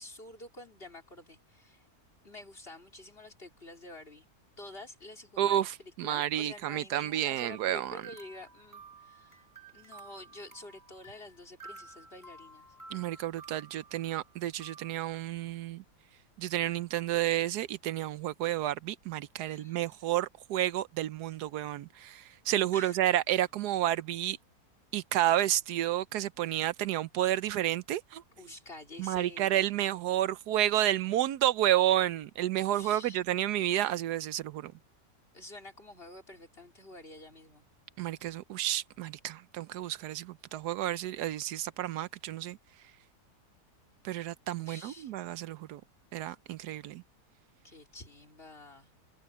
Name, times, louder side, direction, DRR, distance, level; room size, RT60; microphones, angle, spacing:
voice 1, 0.0-1.9 2.2-4.3 4.6-9.5 9.7-12.7 19.4-20.0 22.7-23.0 28.4-29.7 32.7-33.2 35.3-37.6 44.6-45.1 47.6-48.9, left 2 dB, 35° left, 4.3 m, -49 dB
voice 2, 5.4-8.0 12.9-15.8 16.4-24.4 24.9-28.2 29.0-34.7 38.0-42.6 44.0-45.8 46.1-47.0, right 13 dB, 80° right, 1.2 m, -30 dB
sound 1, 7.4-14.9, right 4 dB, 10° right, 2.4 m, -52 dB
omnidirectional pair, 1.7 m